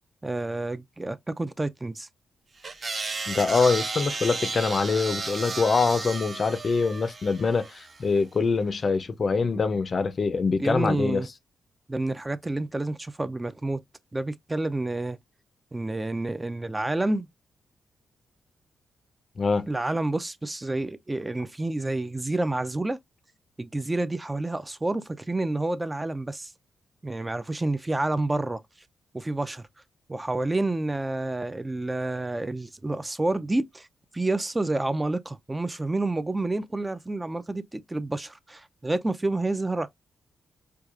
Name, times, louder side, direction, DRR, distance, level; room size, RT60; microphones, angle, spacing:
voice 1, 0.2-2.1 9.5-9.6 10.6-11.3 11.9-13.8 14.1-15.2 15.7-17.3 19.7-23.0 23.6-26.5 27.0-28.6 29.1-29.6 30.1-33.9 34.1-39.9, right 2 dB, 20° right, 0.4 m, -29 dB
sound 1, 2.6-8.0, right 3 dB, 40° right, 0.9 m, -33 dB
voice 2, 3.3-11.2 19.4-19.7, left 4 dB, 45° left, 0.5 m, -24 dB
4.5 x 2.4 x 2.3 m
cardioid pair, 85°, 0 cm